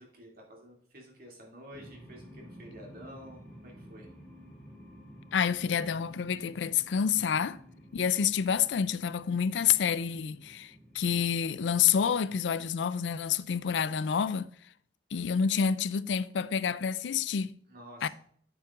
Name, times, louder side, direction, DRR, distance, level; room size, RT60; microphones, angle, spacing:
voice 1, 0.0-4.1 17.7-18.1, equal, 55° right, 2.4 m, -50 dB
sound 1, 1.7-12.6, equal, 5° left, 2.0 m, -52 dB
voice 2, 5.3-7.6 7.9-14.5 15.1-17.6 18.0-18.1, left 7 dB, 80° left, 0.4 m, -28 dB
8.8 x 7.2 x 2.4 m
head